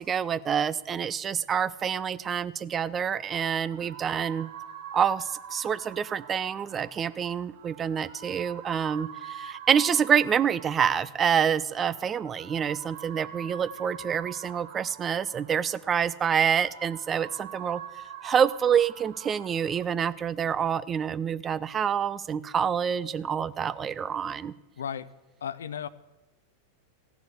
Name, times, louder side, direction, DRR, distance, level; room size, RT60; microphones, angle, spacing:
voice 1, 0.0-4.5 4.9-17.8 18.2-24.5, right 7 dB, 25° right, 17 dB, 0.4 m, -27 dB
sound 1, 3.0-19.8, right 8 dB, 50° right, 1.3 m, -45 dB
voice 2, 24.8-25.1 25.4-25.9, left 8 dB, 65° left, 17 dB, 0.5 m, -34 dB
15.5 x 7.0 x 7.8 m, 1.1 s
figure-of-eight pair, 90°, 0 cm